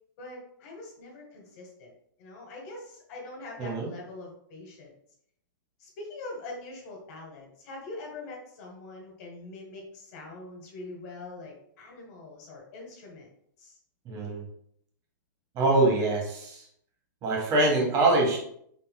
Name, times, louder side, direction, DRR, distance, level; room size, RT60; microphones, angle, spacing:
voice 1, 0.2-1.9 2.2-4.9 5.8-13.3 13.6-13.7, left 2 dB, 55° left, 0 dB, 1.5 m, -43 dB
voice 2, 14.0-14.4 15.5-16.6 17.2-18.4, right 2 dB, 35° right, -1 dB, 1.5 m, -24 dB
4.1 x 3.6 x 2.2 m, 0.70 s
hypercardioid pair, 135°, 11 cm